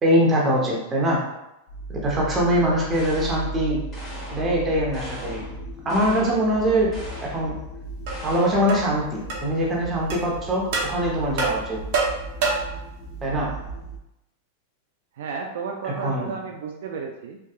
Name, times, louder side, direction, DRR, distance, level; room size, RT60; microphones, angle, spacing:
voice 1, 0.0-1.2 1.9-3.8 4.3-5.5 5.8-6.9 7.2-7.5 8.2-11.8 13.2-13.5 15.8-16.3, equal, 25° right, -3 dB, 0.9 m, -23 dB
sound 1, 1.7-14.0, right 2 dB, 45° left, 0.5 m, -37 dB
sound 2, 2.9-3.5 3.9-4.6 4.9-5.6 5.9-6.4 6.9-7.5 8.1-8.7, equal, 15° left, 1.1 m, -40 dB
sound 3, 8.1-8.2 8.7-8.9 9.3-9.4 10.1-10.2 10.7-10.9 11.4-12.8, right 4 dB, 55° right, 0.7 m, -25 dB
voice 2, 15.2-17.4, right 5 dB, 75° right, 1 dB, 0.3 m, -33 dB
2.7 x 2.3 x 2.3 m, 0.89 s
hypercardioid pair, 120°, 0 cm